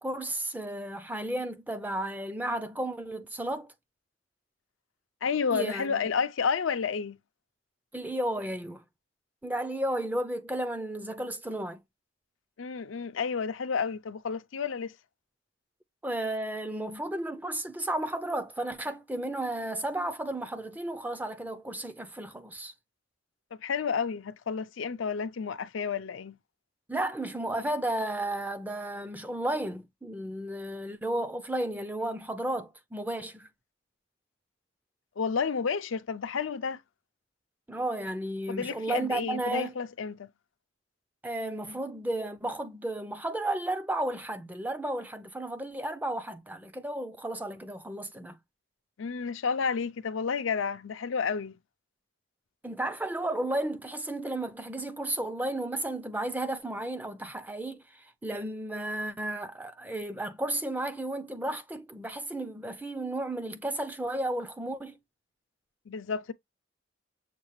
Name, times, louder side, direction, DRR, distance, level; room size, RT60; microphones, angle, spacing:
voice 1, 0.0-3.7 5.5-6.0 7.9-8.8 9.4-11.8 16.0-22.7 26.9-33.5 37.7-39.7 41.2-48.4 52.6-64.9, right 1 dB, 10° right, 0.4 m, -33 dB
voice 2, 5.2-7.2 12.6-14.9 23.6-26.4 35.2-36.8 38.5-40.3 49.0-51.6 65.9-66.3, left 6 dB, 80° left, 0.5 m, -31 dB
6.7 x 2.3 x 3.1 m
head